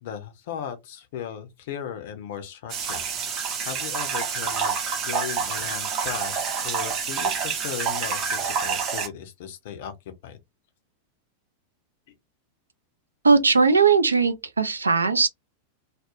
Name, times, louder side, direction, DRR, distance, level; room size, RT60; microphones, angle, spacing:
voice 1, 0.0-3.0 3.6-9.9 10.2-10.4, left 8 dB, 55° left, 0.5 m, -37 dB
sound 1, 2.7-9.1, right 6 dB, 35° right, 0.7 m, -28 dB
voice 2, 13.2-15.3, right 4 dB, 75° right, 0.3 m, -19 dB
2.3 x 2.0 x 2.8 m
figure-of-eight pair, 90°, 0 cm